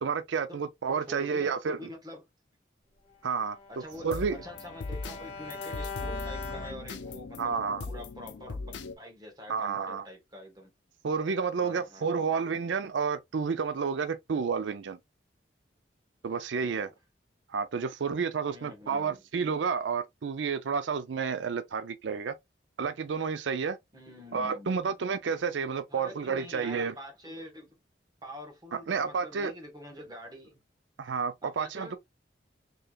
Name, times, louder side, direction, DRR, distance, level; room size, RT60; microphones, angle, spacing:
voice 1, 0.0-1.8 3.2-3.6 4.0-4.4 7.4-7.9 9.5-10.0 11.0-15.0 16.2-16.9 17.5-22.3 22.8-23.8 24.3-26.9 28.9-29.5 31.0-32.0, right 5 dB, 85° right, 0.4 m, -30 dB
voice 2, 1.1-2.2 3.7-7.5 7.8-10.7 11.6-12.4 16.6-16.9 18.5-19.2 23.9-24.8 25.9-27.7 28.2-30.6 31.4-32.0, equal, 20° right, 1.2 m, -46 dB
Bowed string instrument, 3.3-7.4, left 3 dB, 30° left, 1.7 m, -42 dB
sound 1, 3.9-8.9, left 3 dB, 80° left, 0.6 m, -39 dB
4.5 x 3.2 x 2.3 m
head